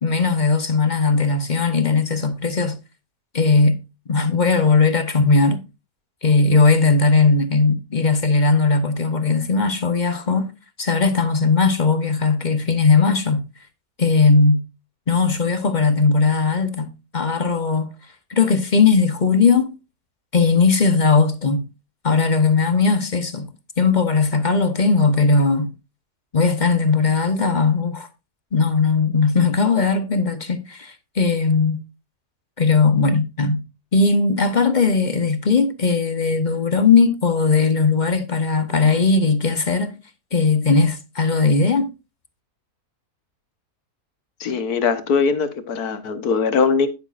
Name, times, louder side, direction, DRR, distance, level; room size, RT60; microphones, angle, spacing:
voice 1, 0.0-2.8 3.3-3.8 4.1-5.6 6.2-10.5 10.8-13.4 14.0-14.6 15.1-17.9 18.3-19.8 20.3-21.6 22.0-23.5 23.8-25.7 26.3-28.1 28.5-31.8 32.6-33.6 33.9-39.9 40.3-41.9, left 4 dB, 35° left, 1.0 m, -18 dB
voice 2, 44.4-46.9, left 5 dB, 75° left, 1.8 m, -21 dB
10.5 x 9.7 x 2.5 m
omnidirectional pair, 1.6 m